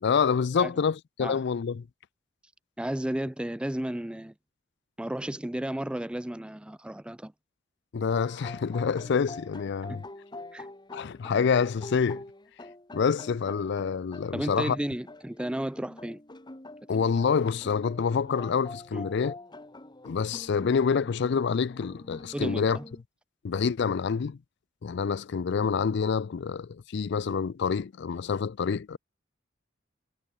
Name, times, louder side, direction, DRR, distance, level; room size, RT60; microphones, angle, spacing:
voice 1, 0.0-1.8 7.9-10.0 10.9-12.2 12.9-14.8 16.9-19.3 20.0-22.8 23.4-24.4 24.8-29.0, left 6 dB, 60° left, 0.4 m, -27 dB
voice 2, 2.8-4.3 5.0-7.3 9.9-10.0 10.5-10.7 14.3-16.2 17.0-17.1 18.9-19.1 22.3-22.8, right 1 dB, 5° right, 0.4 m, -33 dB
sound 1, 8.1-23.0, left 2 dB, 25° left, 2.0 m, -45 dB
head